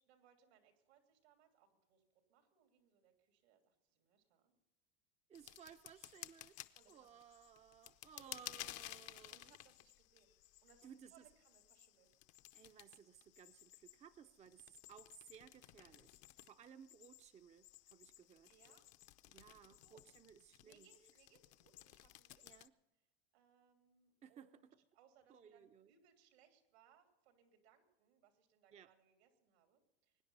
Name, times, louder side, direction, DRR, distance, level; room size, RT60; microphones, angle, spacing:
voice 1, 0.0-2.0 2.3-4.6 5.4-5.5 6.7-7.2 8.1-8.7 9.0-10.3 10.6-12.1 12.6-12.8 18.5-18.9 19.7-20.0 20.6-22.7 23.3-24.7 24.9-30.2, right 8 dB, 85° right, 4 dB, 3.1 m, -71 dB
sound 1, 5.3-22.7, left 15 dB, 50° left, 0.7 m, -56 dB
voice 2, 5.3-6.5 6.9-9.5 10.8-11.2 12.5-18.5 19.3-20.9 22.4-22.7 24.2-24.7 25.3-25.9 28.7-28.9, right 8 dB, 20° right, 10 dB, 0.5 m, -60 dB
23.0 x 9.9 x 5.5 m, 0.93 s
supercardioid pair, 115°, 31 cm